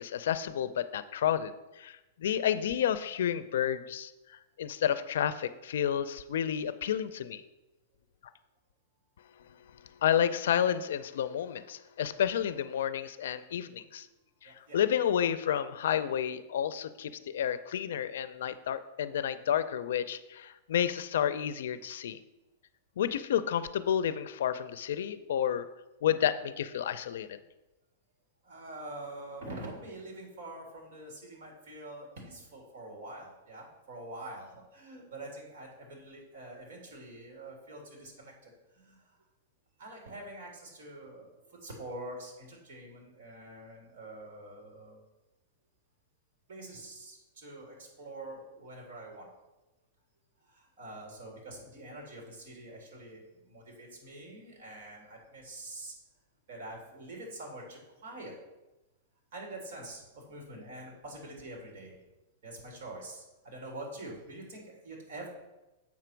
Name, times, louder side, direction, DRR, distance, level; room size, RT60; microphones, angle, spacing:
voice 1, 0.0-7.4 10.0-14.1 14.4-22.2 23.0-25.7 26.0-27.4, left 9 dB, 75° left, 14 dB, 0.4 m, -30 dB
voice 2, 14.4-14.8 28.4-39.2 39.8-45.0 46.5-49.3 50.4-55.9 56.5-58.3 59.3-62.0 62.4-65.3, right 1 dB, 60° right, -1 dB, 2.8 m, -45 dB
7.3 x 6.0 x 4.5 m, 1.0 s
supercardioid pair, 170°, 0 cm